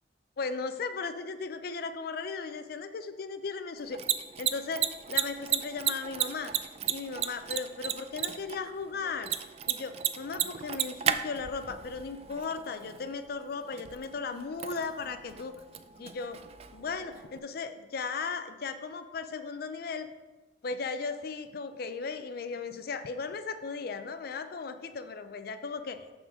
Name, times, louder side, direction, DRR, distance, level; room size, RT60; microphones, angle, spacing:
voice 1, 0.4-4.0 4.4-6.5 6.9-9.3 9.7-15.5 16.0-16.4 16.7-20.1 20.6-26.0, left 4 dB, 55° left, 10 dB, 0.4 m, -36 dB
Mechanisms, 3.8-17.4, right 9 dB, 35° right, 0.3 m, -35 dB
6.1 x 5.0 x 6.2 m, 1.2 s
head